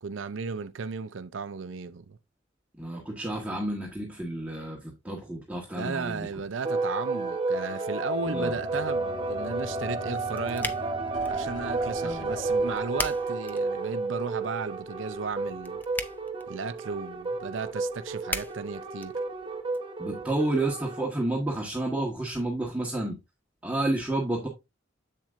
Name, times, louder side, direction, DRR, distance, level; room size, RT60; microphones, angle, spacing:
voice 1, 0.0-2.2 5.7-10.8 11.3-15.8 16.5-19.2, right 5 dB, 75° right, 0.5 m, -35 dB
voice 2, 2.8-6.3 8.3-8.5 12.0-12.3 20.0-23.2 23.6-24.5, right 2 dB, 10° right, 1.4 m, -30 dB
sound 1, 6.6-21.0, right 3 dB, 25° right, 1.0 m, -32 dB
sound 2, 8.1-13.6, left 2 dB, 90° left, 1.7 m, -44 dB
sound 3, 9.8-19.8, left 2 dB, 10° left, 0.6 m, -41 dB
7.7 x 7.3 x 2.5 m
head